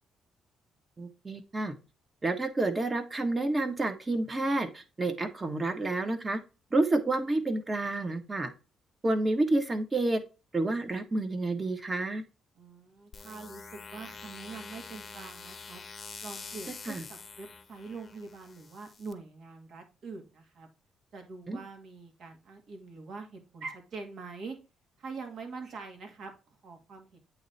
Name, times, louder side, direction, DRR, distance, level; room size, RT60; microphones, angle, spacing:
voice 1, 1.0-1.7 2.2-6.4 6.7-8.5 9.0-10.2 10.5-12.2 16.9-17.0 21.5-21.6, right 2 dB, 25° right, 7 dB, 1.2 m, -29 dB
voice 2, 12.6-15.8 16.2-20.7 21.1-24.6 25.0-27.2, right 4 dB, 65° right, 4 dB, 2.1 m, -44 dB
sound 1, 13.1-19.1, left 5 dB, 35° left, 0.8 m, -46 dB
8.5 x 3.2 x 4.1 m, 0.30 s
cardioid pair, 90°, 0 cm